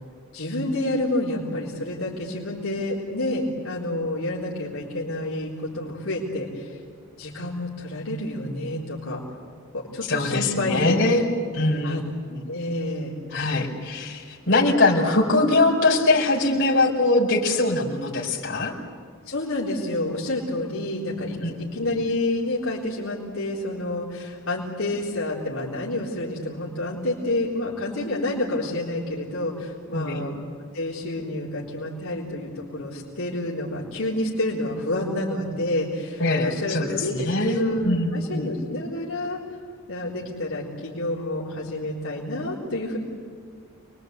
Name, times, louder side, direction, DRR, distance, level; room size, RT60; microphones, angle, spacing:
voice 1, 0.3-6.8 7.2-9.2 9.7-11.0 11.8-12.0 12.5-13.1 19.3-30.3 30.7-37.2 37.5-39.4 39.9-43.0, left 1 dB, 80° left, -5 dB, 4.0 m, -29 dB
voice 2, 10.1-11.3 11.5-12.0 12.3-12.4 13.3-18.7 21.4-21.7 29.9-30.3 36.2-38.5, left 2 dB, 60° left, -3 dB, 4.8 m, -22 dB
29.0 x 22.0 x 8.2 m, 2.1 s
head